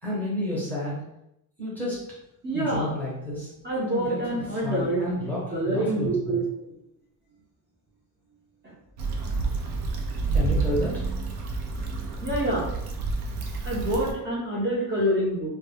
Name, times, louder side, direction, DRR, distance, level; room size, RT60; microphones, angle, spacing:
voice 1, 0.0-1.0 1.6-2.0 2.5-3.5 3.8-6.4 10.3-11.1, left 1 dB, 5° left, -7 dB, 0.7 m, -31 dB
voice 2, 2.4-2.9 3.6-6.4 8.6-8.7 12.2-12.7 13.6-15.5, right 1 dB, 25° right, -6 dB, 0.7 m, -27 dB
Stream / Traffic noise roadway noise / Trickle dribble, 9.0-14.1, right 3 dB, 80° right, 0.6 m, -29 dB
2.2 x 2.1 x 3.3 m, 0.83 s
cardioid pair, 155°, 39 cm